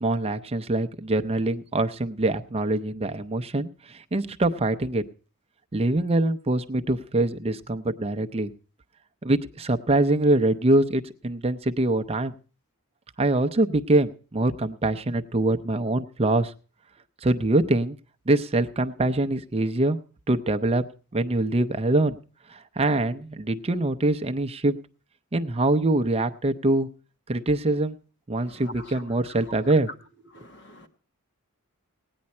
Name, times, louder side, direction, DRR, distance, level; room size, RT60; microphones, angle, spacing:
voice 1, 0.0-5.0 5.7-8.5 9.2-12.3 13.2-16.5 17.2-18.0 18.3-20.0 20.3-20.8 21.1-22.2 22.5-24.7 25.3-26.9 27.3-28.0 28.3-29.9, right 2 dB, 25° right, 0.6 m, -24 dB
voice 2, 28.4-29.0 29.3-29.4 30.3-30.9, equal, 55° left, 1.4 m, -45 dB
17.5 x 9.6 x 4.2 m
head